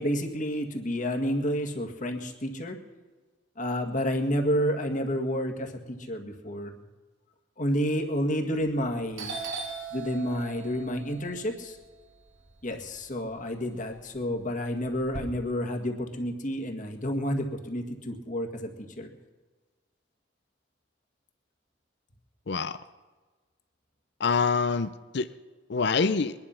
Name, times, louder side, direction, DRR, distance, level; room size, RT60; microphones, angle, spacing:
voice 1, 0.0-2.8 3.6-6.8 7.6-9.4 9.9-11.8 12.6-19.1, equal, 45° left, 3 dB, 1.8 m, -30 dB
Doorbell, 8.6-8.9 9.2-13.3 13.7-15.2, right 4 dB, 85° right, 2.3 m, -40 dB
voice 2, 22.5-22.8 24.2-25.3 25.7-26.3, left 4 dB, 65° left, 12 dB, 0.6 m, -26 dB
22.5 x 11.0 x 5.7 m, 1.3 s
head